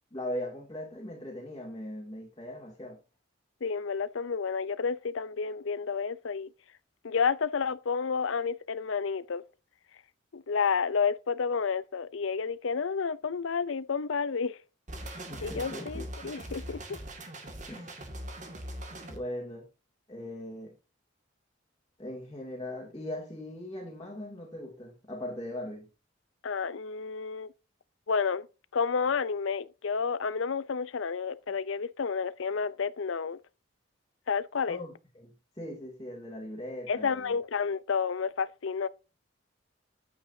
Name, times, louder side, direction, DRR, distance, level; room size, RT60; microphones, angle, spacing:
voice 1, 0.0-3.0 15.3-16.1 17.6-18.0 19.1-19.7 20.1-20.8 22.0-25.9 34.7-37.4, left 1 dB, 20° left, 2.6 m, -40 dB
voice 2, 3.6-6.5 7.0-9.4 10.3-14.6 15.4-17.0 26.4-27.5 28.1-28.5 28.7-33.4 34.3-34.8 36.9-38.9, left 5 dB, 70° left, 0.6 m, -30 dB
sound 1, 14.9-19.2, right 1 dB, 35° right, 2.1 m, -41 dB
10.5 x 8.6 x 2.7 m
head